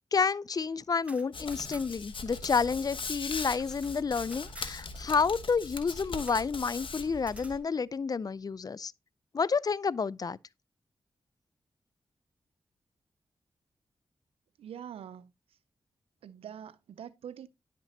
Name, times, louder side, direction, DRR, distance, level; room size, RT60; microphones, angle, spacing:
voice 1, 0.1-8.9 9.3-10.4, left 5 dB, 40° left, 0.4 m, -30 dB
sound 1, 0.9-2.2 2.4-2.5 2.8-4.8 6.2-6.5 7.2-7.6, right 1 dB, 15° right, 0.9 m, -52 dB
Hands, 1.3-7.6, left 4 dB, 60° left, 1.1 m, -40 dB
voice 2, 14.6-15.3 16.2-17.5, right 9 dB, 85° right, 0.4 m, -44 dB
10.0 x 5.9 x 2.8 m
cardioid pair, 50°, 10 cm